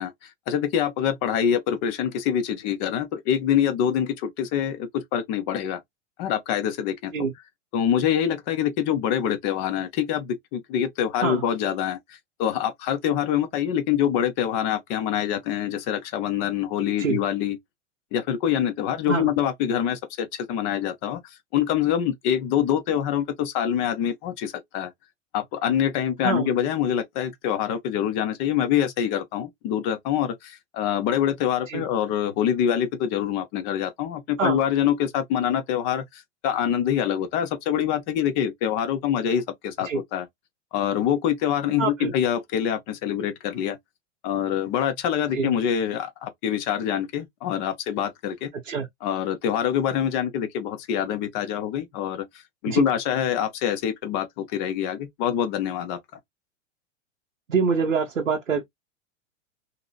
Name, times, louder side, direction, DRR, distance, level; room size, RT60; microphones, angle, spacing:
voice 1, 0.0-5.8 6.2-7.3 7.7-17.6 18.1-21.2 21.5-24.9 25.3-40.3 40.7-43.8 44.2-48.5 49.0-52.2 52.6-56.0, left 9 dB, 35° left, 0.7 m, -25 dB
voice 2, 41.8-42.1 45.3-45.5 48.6-48.9 52.7-52.8 57.5-58.6, right 5 dB, 85° right, 0.7 m, -25 dB
2.8 x 2.6 x 2.3 m
figure-of-eight pair, 95°, 38 cm